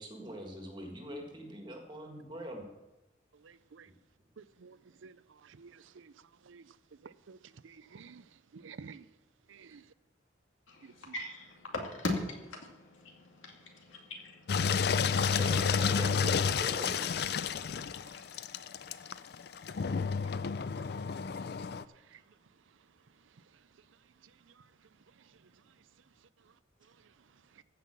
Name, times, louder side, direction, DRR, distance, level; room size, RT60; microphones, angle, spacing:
voice 1, 0.0-2.7 15.4-17.1, equal, 25° right, 1.6 m, -43 dB
voice 2, 3.4-3.9 4.4-6.1 6.4-6.7 7.0-8.2 8.5-9.1 9.5-9.8 10.8-11.1 19.9-20.1 22.1-22.2 24.5-24.6 27.6-27.7, right 5 dB, 80° right, 0.5 m, -52 dB
voice 3, 11.1-12.7 13.0-13.1 13.9-14.4, left 2 dB, 85° left, 2.3 m, -37 dB
Engine, 14.5-21.8, left 6 dB, 55° left, 0.4 m, -31 dB
14.5 x 5.6 x 7.4 m
head